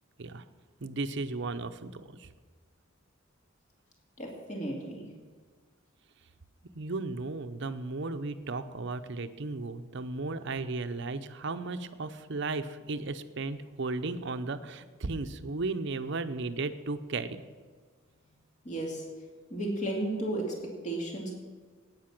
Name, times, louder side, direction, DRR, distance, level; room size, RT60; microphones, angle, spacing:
voice 1, 0.8-2.3 6.7-17.4, right 3 dB, 60° right, 10 dB, 0.7 m, -35 dB
voice 2, 4.2-5.1 18.6-19.1 19.5-20.5 20.8-21.3, right 1 dB, 35° left, 0 dB, 2.4 m, -33 dB
12.5 x 9.4 x 6.0 m, 1.6 s
head